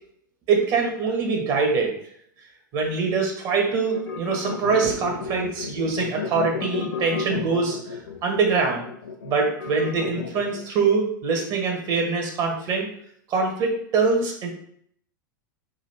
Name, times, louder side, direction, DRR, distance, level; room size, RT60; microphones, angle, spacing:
voice 1, 0.5-1.9 2.7-7.8 8.2-8.8 9.2-12.9 13.3-14.5, right 4 dB, 40° right, 1 dB, 1.4 m, -23 dB
sound 1, 3.9-10.7, left 6 dB, 75° left, 0.7 m, -32 dB
3.8 x 2.9 x 4.4 m, 0.66 s
figure-of-eight pair, 90°, 11 cm